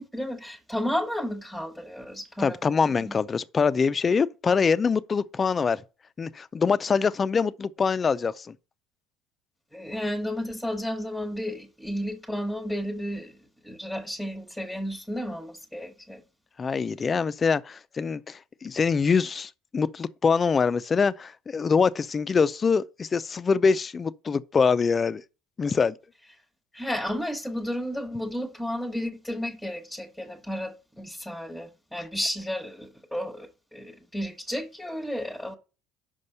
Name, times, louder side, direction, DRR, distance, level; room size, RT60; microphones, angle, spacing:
voice 1, 0.0-2.7 3.0-3.1 9.7-13.4 13.6-16.2 26.7-35.6, equal, ahead, 1.2 m, -32 dB
voice 2, 2.4-5.8 6.2-8.5 16.6-25.2 25.6-25.9, left 5 dB, 30° left, 0.5 m, -24 dB
5.4 x 5.3 x 6.6 m
supercardioid pair, 80°, 0 cm